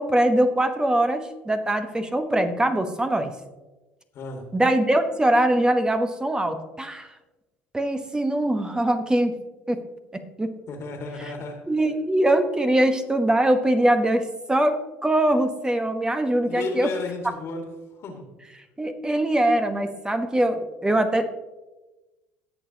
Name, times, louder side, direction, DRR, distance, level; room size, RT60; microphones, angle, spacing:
voice 1, 0.0-3.3 4.5-7.1 7.7-9.3 9.7-9.8 10.1-10.5 11.2-11.3 11.7-16.9 18.8-21.3, right 1 dB, 15° right, 8 dB, 1.1 m, -22 dB
voice 2, 10.7-11.6 16.4-17.6 18.0-18.2, left 3 dB, 50° left, 3 dB, 2.0 m, -33 dB
19.0 x 6.9 x 2.9 m, 1.1 s
hypercardioid pair, 65°, 6 cm